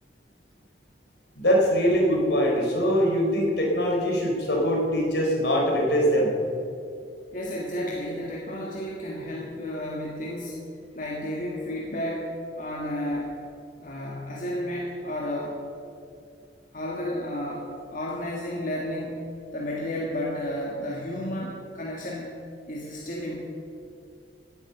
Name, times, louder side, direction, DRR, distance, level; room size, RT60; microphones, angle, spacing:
voice 1, 1.4-6.3, equal, 70° left, -1 dB, 3.9 m, -22 dB
voice 2, 7.3-10.6 11.0-13.3 13.8-15.6 16.7-17.6 17.9-19.2 19.5-22.3 22.7-23.4, left 1 dB, 50° left, -3 dB, 1.8 m, -32 dB
17.0 x 9.0 x 7.1 m, 2.6 s
head